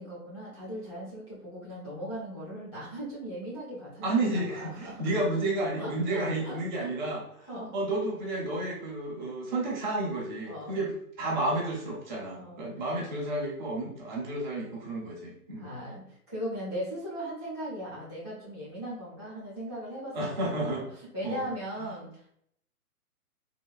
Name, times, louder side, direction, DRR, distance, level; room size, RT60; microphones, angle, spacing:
voice 1, 0.0-5.0 5.8-6.9 7.5-7.7 10.5-10.8 12.3-12.7 15.6-20.7 21.1-22.3, equal, 20° left, -8 dB, 0.4 m, -38 dB
voice 2, 4.0-15.7 20.1-20.9 21.2-21.5, right 2 dB, 30° right, -3 dB, 0.9 m, -31 dB
3.7 x 2.2 x 2.3 m, 0.70 s
hypercardioid pair, 150°, 45 cm